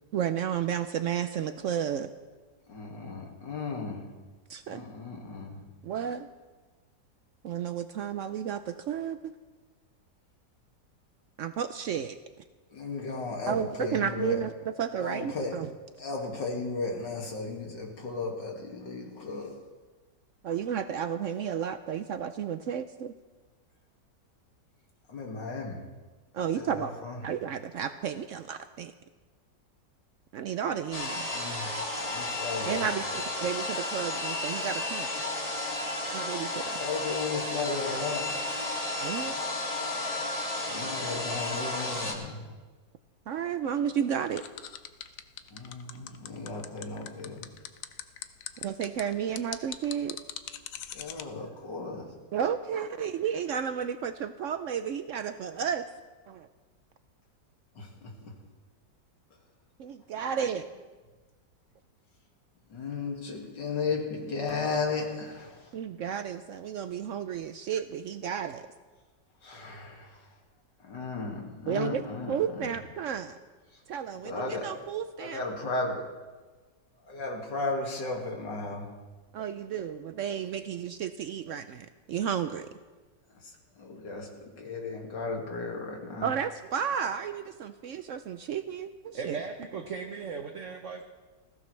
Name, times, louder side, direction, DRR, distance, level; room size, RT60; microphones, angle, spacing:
voice 1, 0.1-2.1 4.5-4.8 5.8-6.3 7.4-9.3 11.4-12.2 13.5-15.7 20.4-23.1 26.3-26.9 27.2-28.9 30.3-31.3 32.6-35.2 36.1-36.8 39.0-39.3 43.3-44.4 48.6-50.2 52.3-55.8 56.3-56.5 59.8-60.7 65.7-68.7 71.7-72.0 72.3-73.4 73.9-75.4 79.3-82.7 86.2-89.4, right 8 dB, 80° right, 10 dB, 0.7 m, -32 dB
voice 2, 2.7-4.1 4.7-5.6 12.7-14.4 15.0-15.6 16.0-19.5 25.1-25.8 26.5-27.2 31.3-31.7 32.0-32.9 36.7-38.2 40.6-42.4 45.5-47.4 50.9-52.1 57.8-58.3 62.7-65.7 69.4-70.3 70.8-72.7 73.7-73.8 74.2-74.7 75.2-76.0 77.0-78.9 83.3-86.3, left 3 dB, 85° left, 0 dB, 2.8 m, -35 dB
sound 1, 30.9-42.1, left 2 dB, 20° left, 2.4 m, -33 dB
sound 2, 44.3-51.2, left 10 dB, 60° left, 0.9 m, -40 dB
voice 3, 89.1-91.0, right 5 dB, 50° right, 3 dB, 1.1 m, -37 dB
20.0 x 16.0 x 3.2 m, 1.3 s
omnidirectional pair, 1.9 m